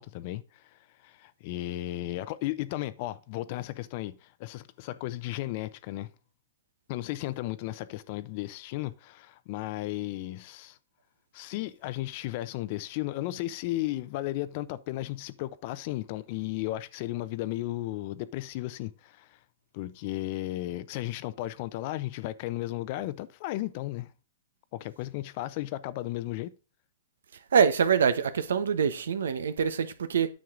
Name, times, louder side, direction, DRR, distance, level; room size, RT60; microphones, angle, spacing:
voice 1, 0.0-6.1 6.9-10.8 11.3-19.4 19.7-24.1 24.7-26.5, left 16 dB, 40° left, 0.6 m, -35 dB
voice 2, 27.5-30.3, right 7 dB, 90° right, 1.1 m, -24 dB
9.4 x 6.5 x 3.8 m
hypercardioid pair, 155°, 0 cm